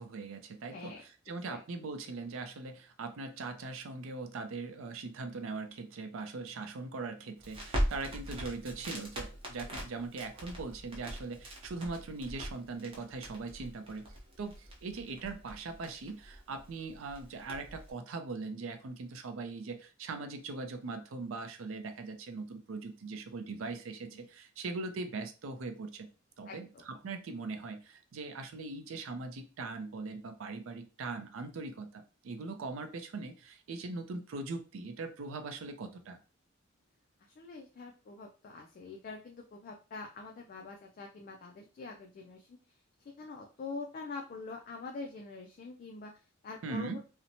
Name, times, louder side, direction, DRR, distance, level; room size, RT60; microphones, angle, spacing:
voice 1, 0.0-26.1 26.4-36.2 46.6-47.0, right 3 dB, 75° right, 7 dB, 0.4 m, -41 dB
voice 2, 0.7-1.0 1.5-1.6 9.7-9.8 24.1-24.3 26.4-26.8 37.4-42.6 43.0-46.1 46.4-47.0, left 3 dB, 45° left, 1 dB, 0.3 m, -45 dB
Crackle, 7.4-17.9, equal, 25° right, 0.7 m, -41 dB
2.8 x 2.1 x 2.6 m, 0.34 s
head